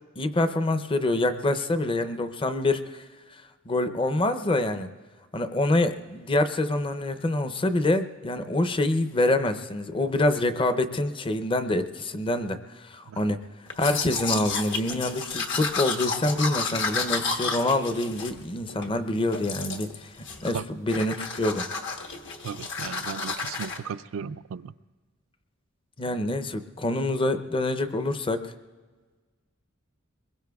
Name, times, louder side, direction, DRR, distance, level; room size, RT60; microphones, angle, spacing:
voice 1, 0.2-3.0 3.7-4.9 5.3-13.4 13.8-21.7 26.0-28.5, left 2 dB, 25° left, 10 dB, 0.6 m, -26 dB
Domestic sounds home sounds, 13.7-18.9 19.3-20.0 20.2-20.6 20.9-23.8, left 4 dB, 65° left, 1.2 m, -31 dB
voice 2, 22.4-24.7, right 7 dB, 70° right, 16 dB, 0.4 m, -36 dB
24.0 x 21.5 x 2.3 m, 1.4 s
head